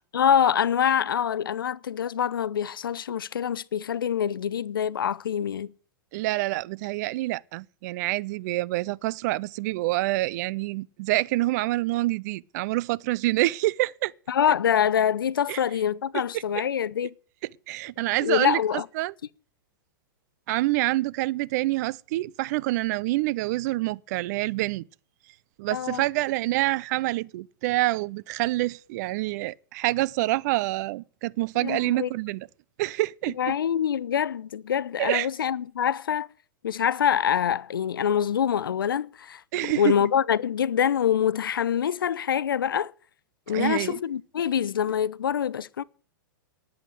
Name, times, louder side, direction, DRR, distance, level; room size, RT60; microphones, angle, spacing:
voice 1, 0.1-5.7 14.3-17.1 18.2-18.9 25.7-26.0 31.6-32.1 33.4-36.3 36.6-42.9 43.5-45.8, left 8 dB, 80° left, 0.5 m, -25 dB
voice 2, 6.1-14.1 15.5-15.6 16.1-16.4 17.7-19.1 20.5-24.9 25.6-32.5 32.8-33.5 35.0-35.3 39.5-40.0 43.5-44.0, right 19 dB, 50° right, 0.5 m, -27 dB
10.5 x 8.0 x 7.8 m
hypercardioid pair, 110°, 11 cm